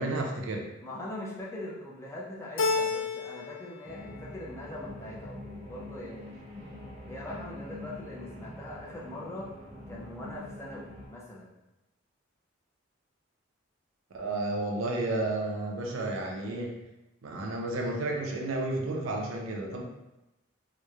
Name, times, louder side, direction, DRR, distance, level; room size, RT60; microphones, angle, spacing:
voice 1, 0.0-0.7 14.1-16.7 17.2-19.8, right 2 dB, 85° right, 1 dB, 0.5 m, -32 dB
voice 2, 0.8-6.5 7.1-9.5 9.9-11.5, left 1 dB, 15° left, -5 dB, 0.4 m, -42 dB
Keyboard (musical), 2.6-3.7 4.0-4.7, left 4 dB, 80° left, 0.3 m, -30 dB
sound 1, 3.8-11.1, left 1 dB, 30° right, 0.7 m, -44 dB
2.9 x 2.0 x 2.3 m, 0.95 s
head